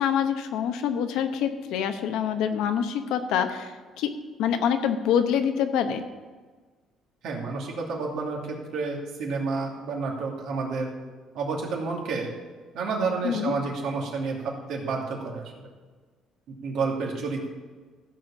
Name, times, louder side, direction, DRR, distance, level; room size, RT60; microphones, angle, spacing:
voice 1, 0.0-4.1 4.4-6.0 13.2-13.5, left 8 dB, 85° left, 8 dB, 1.0 m, -26 dB
voice 2, 7.2-10.9 11.3-12.3 12.7-14.4 14.7-15.7 16.5-17.5, right 4 dB, 75° right, -1 dB, 2.6 m, -30 dB
15.0 x 5.1 x 7.1 m, 1.4 s
cardioid pair, 125°, 0 cm